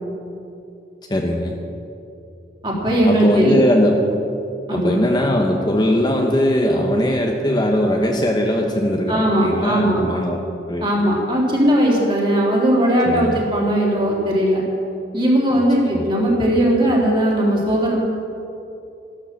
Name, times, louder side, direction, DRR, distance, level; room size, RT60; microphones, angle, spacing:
voice 1, 1.1-1.6 3.0-4.0 4.7-10.4 10.7-10.9 13.1-13.4 15.9-16.1, left 1 dB, 25° left, 1 dB, 1.1 m, -20 dB
voice 2, 2.6-3.6 4.7-5.0 9.1-10.0 10.8-14.6 15.1-18.0, right 1 dB, 25° right, -3 dB, 3.5 m, -18 dB
14.0 x 12.5 x 7.5 m, 2.8 s
head